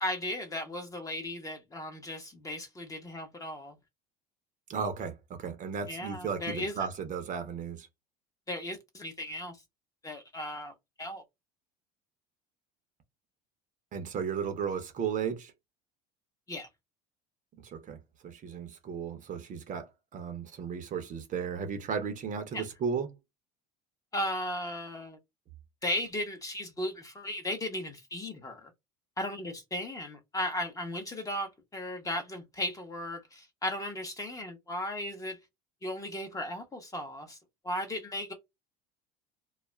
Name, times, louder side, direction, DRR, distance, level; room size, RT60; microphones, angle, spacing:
voice 1, 0.0-3.8 5.9-6.8 8.5-9.6 10.0-11.2 16.5-16.7 22.5-22.6 24.1-25.2 25.8-28.7 29.2-35.4 35.8-37.4 37.6-38.3, left 1 dB, 15° left, 0.8 m, -36 dB
voice 2, 4.7-7.9 13.9-15.5 17.6-18.0 18.2-23.1, right 6 dB, 40° right, 0.7 m, -35 dB
2.3 x 2.0 x 3.0 m
supercardioid pair, 110°, 20 cm